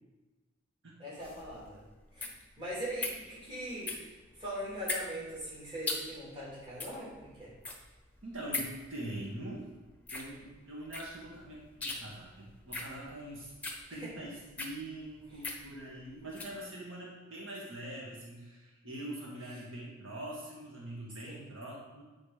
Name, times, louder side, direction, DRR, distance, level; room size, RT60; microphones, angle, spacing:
voice 1, 1.0-1.8 2.1-2.3 2.6-4.1 4.4-7.5 13.9-14.1 15.3-15.4 21.2-21.5, equal, 25° right, -8 dB, 2.5 m, -41 dB
sound 1, 1.2-16.6, left 3 dB, 5° left, 0.7 m, -41 dB
voice 2, 8.2-9.7 10.1-13.5 13.9-22.0, right 1 dB, 80° right, -4 dB, 1.7 m, -43 dB
8.3 x 4.2 x 5.0 m, 1.2 s
head